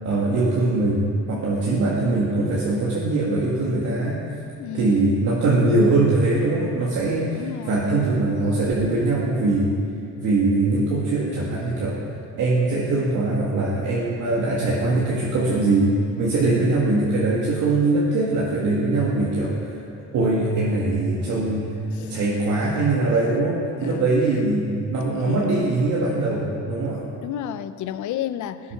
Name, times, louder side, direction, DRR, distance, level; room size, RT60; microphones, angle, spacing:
voice 1, 0.0-4.2 4.7-9.8 10.2-12.0 12.4-15.9 16.2-19.7 20.1-21.7 22.0-27.0, right 2 dB, 80° right, -6 dB, 2.1 m, -22 dB
voice 2, 4.6-5.3 7.3-8.0 16.4-16.8 21.9-22.2 23.8-24.1 25.1-25.8 27.2-28.7, left 10 dB, 75° left, 13 dB, 0.6 m, -32 dB
16.0 x 8.6 x 5.9 m, 2.5 s
cardioid pair, 90°, 30 cm